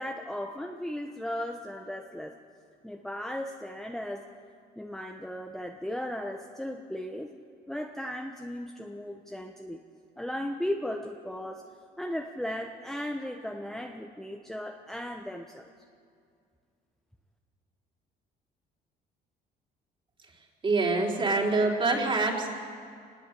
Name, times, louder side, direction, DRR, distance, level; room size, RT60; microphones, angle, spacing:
voice 1, 0.0-2.4 2.8-4.3 4.8-7.3 7.7-9.8 10.2-11.7 12.0-15.7, left 1 dB, ahead, 2 dB, 1.2 m, -36 dB
voice 2, 20.6-22.5, right 3 dB, 30° right, 0 dB, 4.5 m, -25 dB
25.0 x 20.0 x 8.5 m, 2.2 s
cardioid pair, 110°, 17 cm